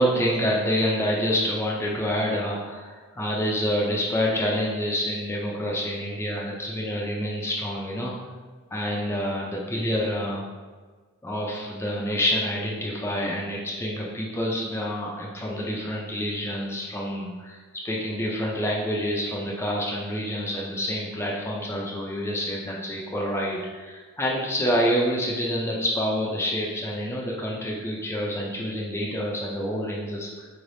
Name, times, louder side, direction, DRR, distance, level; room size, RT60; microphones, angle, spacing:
voice 1, 0.0-8.1 8.7-10.4 11.2-17.6 17.8-30.5, equal, 10° left, -3 dB, 0.4 m, -27 dB
3.9 x 3.2 x 2.6 m, 1.4 s
head